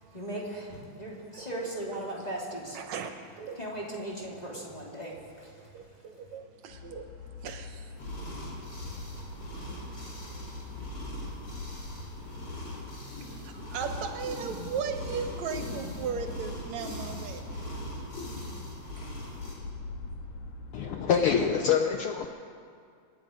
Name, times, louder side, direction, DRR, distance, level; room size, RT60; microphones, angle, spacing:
voice 1, 0.1-2.8 3.5-5.7, right 1 dB, 15° left, -4 dB, 2.6 m, -38 dB
voice 2, 2.7-3.6 5.6-8.2 9.2-9.3 9.7-10.3 13.3-17.5, right 6 dB, 70° right, 6 dB, 2.3 m, -37 dB
sound 1, 6.7-21.3, left 3 dB, 70° left, 2.3 m, -44 dB
sound 2, 8.0-19.5, left 1 dB, 35° left, 3.9 m, -40 dB
voice 3, 20.7-22.3, left 7 dB, 90° left, 4 dB, 1.2 m, -25 dB
26.5 x 10.0 x 5.1 m, 2.3 s
omnidirectional pair, 3.3 m